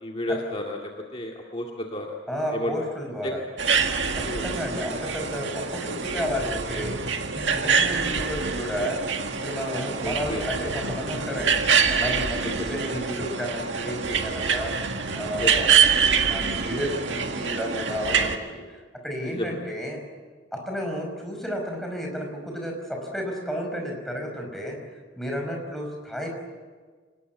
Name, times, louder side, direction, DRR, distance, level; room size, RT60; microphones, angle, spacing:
voice 1, 0.0-2.1 2.5-2.7 3.2-3.4 4.2-4.4 10.0-10.4 12.4-12.8 15.4-15.5 19.2-19.6, left 1 dB, 30° left, 0 dB, 2.2 m, -32 dB
voice 2, 2.3-3.4 4.1-7.0 7.3-9.0 9.4-11.6 11.9-14.7 15.2-15.7 16.1-20.0 20.5-24.8 25.2-26.3, equal, ahead, 1 dB, 5.4 m, -32 dB
sound 1, 3.6-18.4, right 6 dB, 85° right, 1.8 m, -25 dB
25.5 x 19.5 x 9.4 m, 1.5 s
head